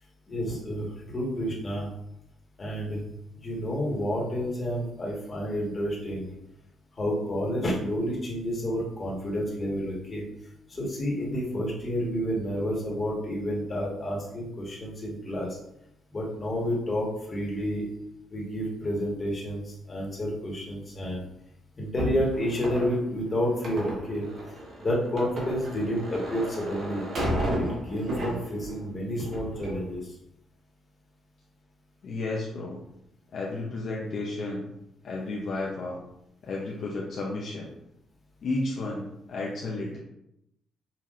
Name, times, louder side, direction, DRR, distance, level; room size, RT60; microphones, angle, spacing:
voice 1, 0.3-1.9 2.6-3.0 3.4-6.3 6.9-10.2 10.7-15.6 16.1-17.8 18.3-21.2 21.8-24.2 24.8-27.0 27.5-30.1, equal, 35° left, -3 dB, 1.5 m, -30 dB
sound 1, 22.0-28.8 29.2-29.8, equal, 55° right, 1.4 m, -33 dB
voice 2, 32.0-32.8 33.3-34.7 35.0-36.0 36.4-37.7 38.4-40.0, left 2 dB, 60° left, -3 dB, 0.6 m, -32 dB
5.7 x 2.7 x 2.5 m, 0.79 s
cardioid pair, 90°, 0 cm